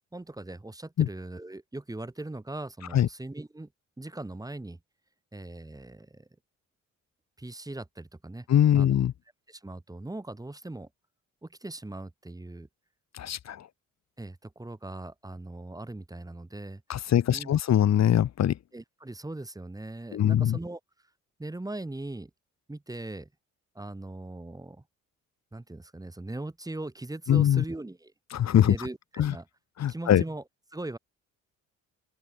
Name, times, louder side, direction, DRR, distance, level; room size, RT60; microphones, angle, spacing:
voice 1, 0.1-3.7 4.0-4.8 5.3-6.3 7.4-8.5 8.7-8.9 9.5-10.9 11.4-12.7 14.2-17.6 18.7-20.8 21.4-22.3 22.7-23.3 23.7-24.8 25.5-28.1 28.6-29.5 29.9-30.4 30.7-31.0, right 2 dB, 10° right, 2.9 m, -40 dB
voice 2, 8.5-9.1 13.1-13.7 16.9-18.6 20.1-20.6 27.3-27.6 28.3-28.8 29.2-29.3 29.8-30.2, left 10 dB, 60° left, 1.8 m, -22 dB
open air
cardioid pair, 90°, 30 cm